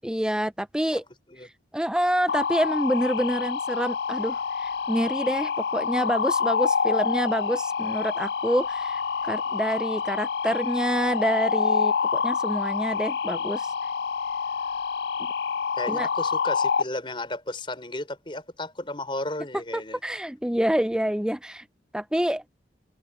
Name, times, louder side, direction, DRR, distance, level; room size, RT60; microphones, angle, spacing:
voice 1, 0.0-1.0 1.7-13.7 15.9-16.1 19.7-21.6 21.9-22.4, equal, 5° right, 0.6 m, -27 dB
sound 1, 2.3-16.8, left 6 dB, 70° left, 0.4 m, -27 dB
voice 2, 15.8-20.0, left 1 dB, 30° left, 5.9 m, -34 dB
head